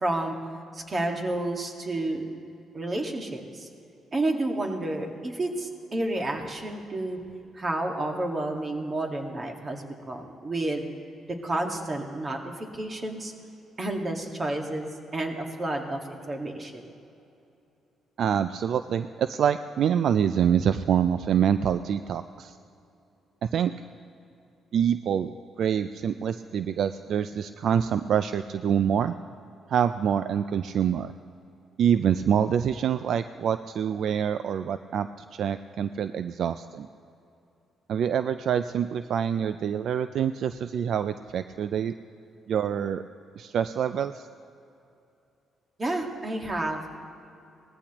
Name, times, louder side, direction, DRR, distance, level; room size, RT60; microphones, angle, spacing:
voice 1, 0.0-0.3 0.7-2.2 2.7-3.7 4.1-7.2 7.5-10.9 11.2-13.3 13.8-16.8 45.8-47.0, right 2 dB, 35° right, 2 dB, 1.7 m, -30 dB
voice 2, 18.2-22.5 23.4-23.7 24.7-25.3 25.6-29.1 29.7-31.1 31.8-36.9 37.9-41.9 42.5-43.0 43.4-44.3, right 8 dB, 65° right, 11 dB, 0.3 m, -26 dB
19.5 x 14.5 x 3.0 m, 2.7 s
cardioid pair, 90°, 0 cm